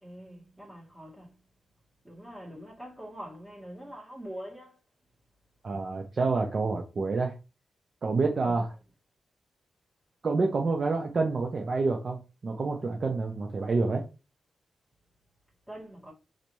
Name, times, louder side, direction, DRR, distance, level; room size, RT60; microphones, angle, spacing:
voice 1, 0.0-1.4 2.0-4.8 8.4-8.6 15.7-16.1, equal, 15° right, 1.9 m, -44 dB
voice 2, 5.6-7.3 8.0-8.7 10.2-14.0, right 3 dB, 40° right, 0.7 m, -28 dB
4.1 x 3.3 x 3.1 m
wide cardioid pair, 125°, 0 cm